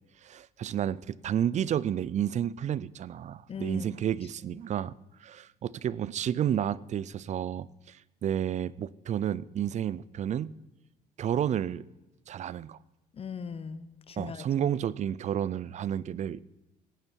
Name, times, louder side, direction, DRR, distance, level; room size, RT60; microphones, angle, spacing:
voice 1, 0.2-4.9 5.2-10.5 11.2-11.8 12.3-12.8 14.2-16.4, right 10 dB, 45° right, 21 dB, 0.4 m, -31 dB
voice 2, 3.5-3.9 4.5-4.6 13.1-14.7, left 6 dB, 35° left, 15 dB, 0.9 m, -40 dB
16.5 x 9.7 x 4.6 m, 1.0 s
cardioid pair, 110°, 17 cm